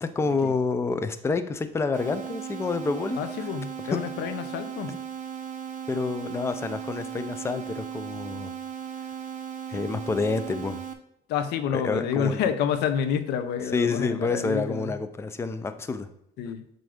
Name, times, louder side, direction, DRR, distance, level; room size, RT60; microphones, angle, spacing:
voice 1, 0.0-3.2 3.8-4.0 4.9-5.0 5.9-8.5 9.7-10.8 11.7-12.4 13.7-16.1, left 4 dB, 15° left, 10 dB, 0.5 m, -28 dB
sound 1, 1.9-10.9, right 8 dB, 50° right, 0.8 m, -37 dB
voice 2, 3.2-5.0 11.3-15.0 16.4-16.6, left 8 dB, 80° left, 10 dB, 0.6 m, -28 dB
7.7 x 2.7 x 4.9 m, 0.77 s
cardioid pair, 110°, 17 cm